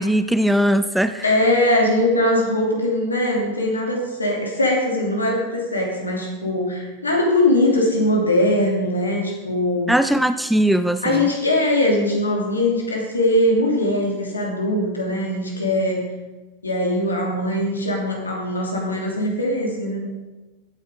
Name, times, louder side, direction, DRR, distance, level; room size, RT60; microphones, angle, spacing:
voice 1, 0.0-1.3 9.9-11.3, equal, 5° right, 11 dB, 0.4 m, -19 dB
voice 2, 1.2-9.9 11.0-16.0 16.6-20.1, left 1 dB, 80° left, -1 dB, 2.9 m, -21 dB
15.5 x 9.5 x 3.7 m, 1.1 s
figure-of-eight pair, 90°, 0 cm